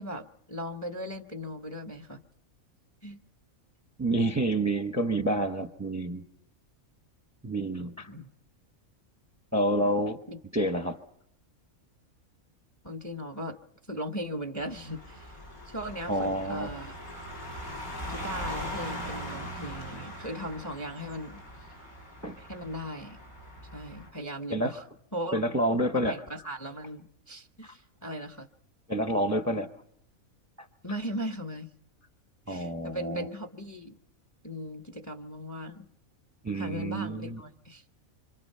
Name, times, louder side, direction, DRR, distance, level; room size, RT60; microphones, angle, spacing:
voice 1, 0.0-2.2 3.0-3.2 7.8-8.3 10.3-10.4 12.8-13.6 13.9-15.4 15.7-17.0 18.1-21.4 22.4-23.2 23.7-24.8 25.1-25.4 25.9-28.5 30.8-31.7 32.5-34.0 34.4-35.9 36.5-37.8, equal, 15° left, 6 dB, 0.9 m, -38 dB
voice 2, 4.0-6.2 7.4-8.1 9.5-10.2 10.5-11.0 16.1-16.7 22.2-22.4 24.5-24.7 25.3-26.2 27.6-27.7 28.9-29.7 32.5-33.3 36.4-37.4, right 1 dB, 15° right, 7 dB, 0.8 m, -28 dB
sound 1, 14.6-24.1, equal, 85° left, 6.7 m, -40 dB
26.0 x 25.5 x 5.6 m, 0.72 s
omnidirectional pair, 1.5 m